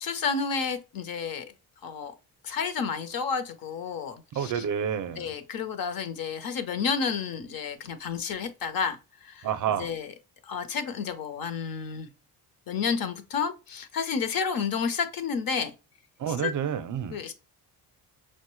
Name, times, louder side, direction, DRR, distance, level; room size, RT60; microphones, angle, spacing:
voice 1, 0.0-1.4 1.8-2.1 2.4-4.6 5.2-9.5 9.8-10.1 10.5-12.1 12.7-15.7 16.3-16.5 17.1-17.3, left 6 dB, 55° left, 0.7 m, -31 dB
voice 2, 4.3-5.3 9.4-9.9 16.2-17.2, right 8 dB, 50° right, 0.5 m, -29 dB
5.9 x 2.1 x 3.0 m
cardioid pair, 145°, 41 cm